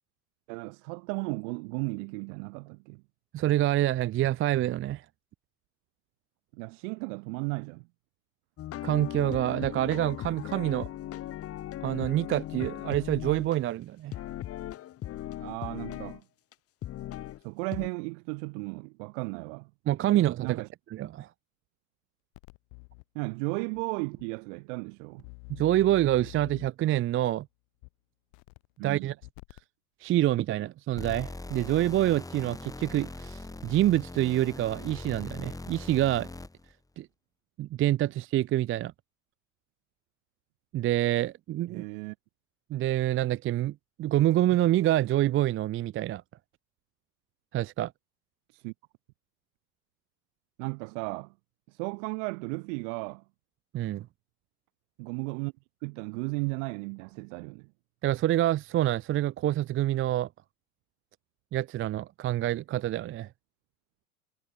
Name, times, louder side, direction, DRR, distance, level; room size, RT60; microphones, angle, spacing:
voice 1, 0.5-3.0 6.5-7.9 15.4-16.2 17.4-19.7 20.4-20.7 23.1-25.3 28.8-29.1 41.7-42.1 48.5-48.7 50.6-51.3 51.7-53.2 55.0-55.5 55.8-57.7, right 34 dB, 60° right, 1.5 m, -35 dB
voice 2, 3.3-5.0 8.8-10.9 11.8-14.1 19.9-20.6 20.9-21.3 25.5-27.5 28.8-29.1 30.0-36.3 37.0-37.1 37.6-38.9 40.7-41.8 42.7-46.2 47.5-47.9 53.7-54.1 58.0-60.3 61.5-63.3, right 14 dB, 30° right, 0.6 m, -27 dB
sound 1, 8.6-13.6 14.1-16.2 16.5-16.6 16.8-17.4 17.7-17.9, left 13 dB, 30° left, 1.0 m, -38 dB
sound 2, 22.3-23.0 23.7-23.8 24.2-24.3 25.2-26.9 27.8-27.9 28.3-28.9 29.2-29.6 31.1-31.2 32.2-32.7 33.0-33.1, left 37 dB, 60° left, 3.4 m, -47 dB
sound 3, 31.0-36.7, left 2 dB, 10° left, 2.7 m, -41 dB
hypercardioid pair, 90°, 43 cm